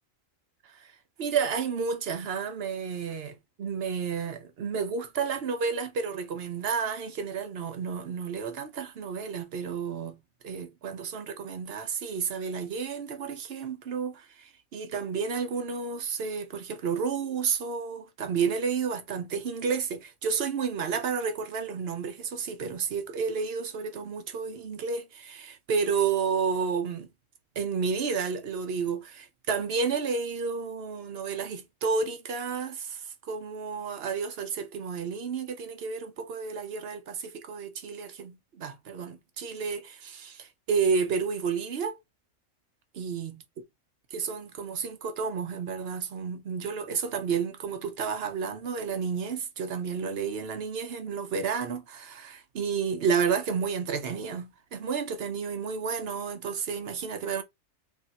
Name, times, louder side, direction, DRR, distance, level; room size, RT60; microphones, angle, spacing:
voice 1, 1.2-27.1 27.6-42.0 42.9-43.4 44.1-57.4, right 5 dB, 55° right, 0.9 m, -31 dB
3.5 x 2.5 x 4.0 m
omnidirectional pair, 1.4 m